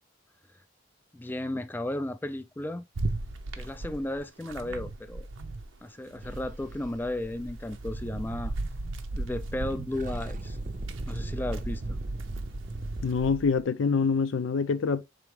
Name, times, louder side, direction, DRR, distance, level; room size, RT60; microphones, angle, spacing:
voice 1, 1.1-2.9 3.6-5.3 5.8-8.5 9.1-10.6 11.1-12.0, left 1 dB, 10° left, 0.3 m, -34 dB
sound 1, 2.9-5.8 6.1-13.3, right 2 dB, 85° right, 0.7 m, -37 dB
sound 2, 6.2-9.1 9.4-9.5 9.8-13.6, right 2 dB, 45° right, 0.6 m, -38 dB
voice 2, 13.0-15.0, left 5 dB, 80° left, 0.5 m, -25 dB
4.8 x 3.4 x 3.1 m
head